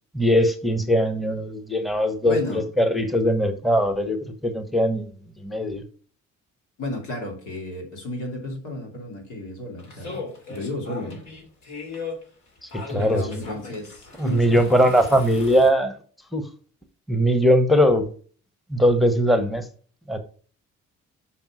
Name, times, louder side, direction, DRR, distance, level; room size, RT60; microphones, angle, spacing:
voice 1, 0.1-5.1 5.4-5.8 12.9-13.3 14.2-16.0 16.3-16.4 17.1-18.1 18.7-19.6 20.1-20.2, equal, ahead, 8 dB, 1.1 m, -20 dB
voice 2, 2.2-2.6 6.8-11.2 12.9-14.7, left 1 dB, 80° left, 1 dB, 2.9 m, -33 dB
sound 1, 9.8-15.7, left 4 dB, 65° left, 2.9 m, -38 dB
6.0 x 5.3 x 6.2 m, 0.42 s
cardioid pair, 90°, 30 cm